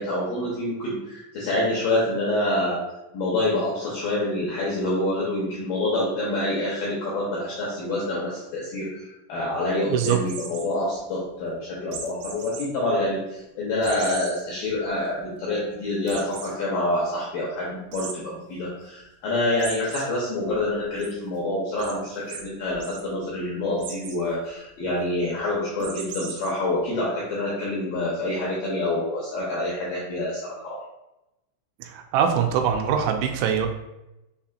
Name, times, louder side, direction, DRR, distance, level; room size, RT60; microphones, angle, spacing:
voice 1, 0.0-2.8 3.1-30.8, left 1 dB, 80° left, -5 dB, 2.0 m, -27 dB
sound 1, 10.0-10.6 11.9-12.6 13.1-13.2 13.8-14.3 14.8-14.9 15.2-15.3 16.1-16.5 17.9-18.1 19.6-20.0 20.5-21.1 21.8-21.9 22.3-22.4 22.7-23.0 23.8-24.2 25.8-26.5, right 5 dB, 75° right, 2.1 m, -37 dB
voice 2, 31.8-33.7, right 8 dB, 90° right, 4 dB, 2.8 m, -23 dB
6.5 x 2.8 x 2.4 m, 0.93 s
omnidirectional pair, 5.1 m